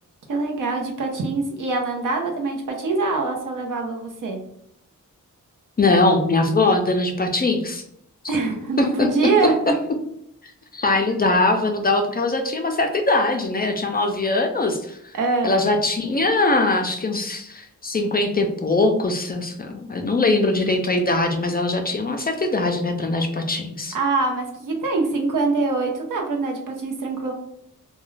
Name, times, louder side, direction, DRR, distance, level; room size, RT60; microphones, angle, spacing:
voice 1, 0.3-4.4 8.3-9.5 15.1-15.5 23.9-27.3, right 3 dB, 70° right, 2 dB, 0.7 m, -24 dB
voice 2, 5.8-7.8 8.8-9.1 10.7-15.0 15.4-24.0, left 2 dB, 30° left, 4 dB, 0.4 m, -21 dB
2.4 x 2.2 x 3.1 m, 0.73 s
wide cardioid pair, 75°, 32 cm